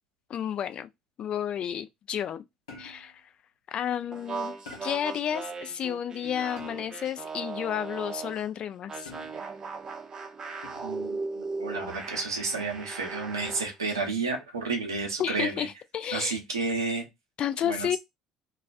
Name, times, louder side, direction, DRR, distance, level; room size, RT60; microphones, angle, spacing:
voice 1, 0.3-0.9 1.2-2.4 2.8-3.1 3.7-4.6 4.8-9.1 15.2-16.4 17.4-18.0, left 9 dB, 45° left, 0.3 m, -31 dB
sound 1, 2.7-3.2 4.7-5.2 6.6-7.1 9.1-9.6 10.6-11.1 12.5-12.9, left 2 dB, 80° left, 0.8 m, -48 dB
sound 2, 4.1-8.5 8.9-13.7, right 4 dB, 30° right, 0.6 m, -38 dB
voice 2, 10.8-15.7 16.1-17.0 17.6-18.0, right 4 dB, 90° right, 0.7 m, -31 dB
2.3 x 2.2 x 2.4 m
hypercardioid pair, 60°, 2 cm